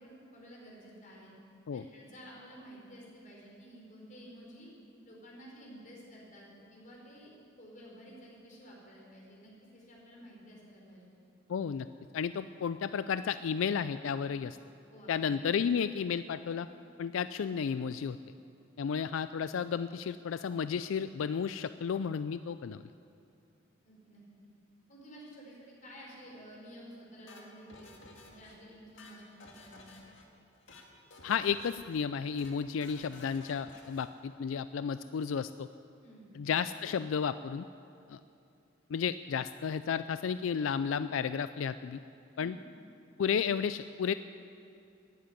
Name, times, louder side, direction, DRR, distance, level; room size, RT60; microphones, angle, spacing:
voice 1, 0.0-1.3 1.7-4.7 5.0-11.0 14.9-15.6 23.8-24.2 24.9-27.9 28.2-29.9 36.0-36.3 42.3-42.6, equal, 40° left, -3 dB, 4.7 m, -52 dB
voice 2, 11.5-11.9 12.1-14.6 15.1-16.7 17.0-18.2 18.8-22.8 31.2-35.7 36.3-37.7 38.1-38.2 38.9-42.0 42.4-42.6 43.2-44.1, left 7 dB, 85° left, 12 dB, 0.4 m, -32 dB
sound 1, 27.3-28.5 28.8-30.2 30.5-30.9 31.1-31.9 32.2-32.5 32.8-34.1, left 3 dB, 65° left, 2.0 m, -54 dB
13.0 x 10.5 x 9.8 m, 2.6 s
head